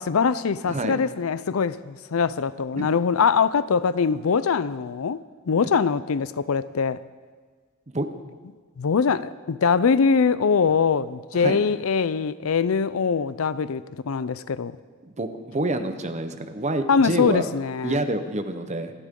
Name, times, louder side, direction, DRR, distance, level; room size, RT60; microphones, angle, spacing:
voice 1, 0.0-7.0 8.8-14.8 16.9-18.0, left 5 dB, 85° left, 0.5 m, -23 dB
voice 2, 0.7-1.0 2.7-2.9 7.9-8.1 11.3-11.6 15.0-17.5 17.8-18.9, right 2 dB, 35° right, 1.0 m, -27 dB
26.5 x 12.0 x 3.8 m
head